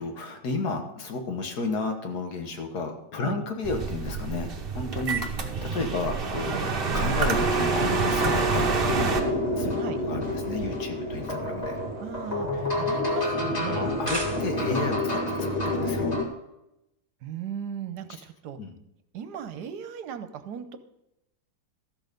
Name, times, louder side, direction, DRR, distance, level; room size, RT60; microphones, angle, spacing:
voice 1, 0.0-9.0 9.6-11.8 13.7-16.2 18.6-18.8, left 3 dB, 65° left, 4 dB, 1.8 m, -32 dB
sound 1, 3.6-9.2, right 4 dB, 40° right, 0.9 m, -27 dB
sound 2, 7.9-16.3, left 1 dB, 25° left, 1.7 m, -29 dB
voice 2, 12.0-13.9 17.2-18.6 19.1-20.8, right 8 dB, 75° right, 10 dB, 1.3 m, -37 dB
sound 3, 13.8-14.9, right 2 dB, 15° right, 1.3 m, -36 dB
13.5 x 6.4 x 5.2 m, 0.88 s
omnidirectional pair, 1.8 m